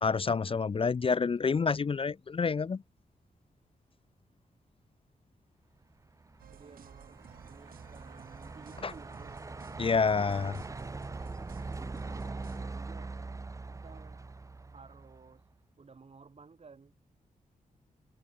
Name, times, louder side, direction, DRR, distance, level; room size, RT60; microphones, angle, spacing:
voice 1, 0.0-2.8 8.8-8.9 9.8-10.5, left 5 dB, 40° left, 0.7 m, -28 dB
Truck, 6.0-15.4, right 3 dB, 20° right, 0.7 m, -42 dB
sound 1, 6.4-12.6, right 9 dB, 85° right, 1.7 m, -54 dB
voice 2, 6.5-9.4 12.5-13.1 13.7-14.3 14.6-15.4 15.8-16.9, right 5 dB, 45° right, 4.8 m, -56 dB
cardioid pair, 90°, 15 cm